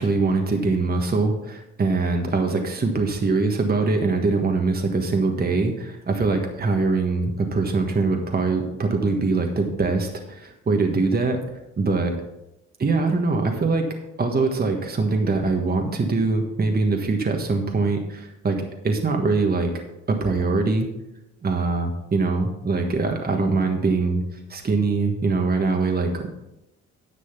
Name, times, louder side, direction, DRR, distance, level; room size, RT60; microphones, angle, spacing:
voice 1, 0.0-11.4 11.8-12.1 12.8-13.9 14.2-18.6 18.8-19.7 20.1-20.9 21.4-26.3, right 3 dB, 30° right, 3 dB, 1.4 m, -23 dB
10.0 x 6.2 x 5.8 m, 0.91 s
cardioid pair, 90°, 30 cm